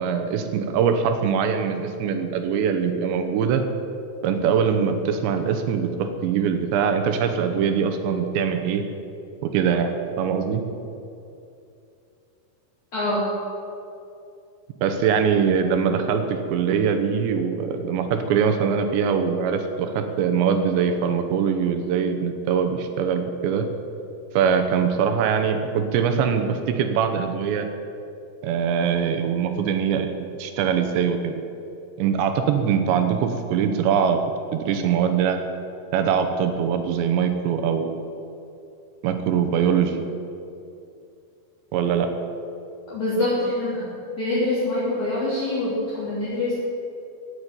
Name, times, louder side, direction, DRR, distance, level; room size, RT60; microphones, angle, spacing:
voice 1, 0.0-3.6 4.2-8.9 9.4-10.6 14.8-23.7 24.3-27.7 28.4-31.3 32.0-34.2 34.5-35.4 35.9-38.0 39.0-40.0 41.7-42.1, right 7 dB, 75° right, 7 dB, 2.8 m, -22 dB
voice 2, 12.9-13.2 42.9-43.9 44.2-46.5, left 2 dB, 40° left, -9 dB, 4.1 m, -25 dB
16.0 x 8.2 x 9.0 m, 2.6 s
omnidirectional pair, 5.8 m